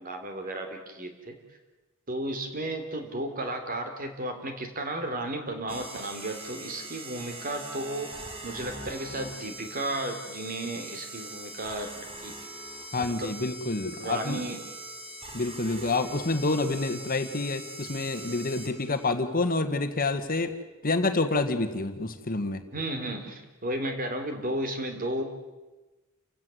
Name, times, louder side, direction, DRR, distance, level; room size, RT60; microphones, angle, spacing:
voice 1, 0.0-1.4 2.1-8.1 8.4-12.3 12.9-13.3 13.9-14.7 22.7-25.2, right 1 dB, 45° right, 6 dB, 3.4 m, -34 dB
sound 1, 5.7-19.1, right 1 dB, 25° right, 3.1 m, -42 dB
voice 2, 12.9-14.4 15.3-20.5 20.8-22.6, left 3 dB, 45° left, 8 dB, 1.5 m, -28 dB
29.5 x 16.0 x 7.8 m, 1.1 s
head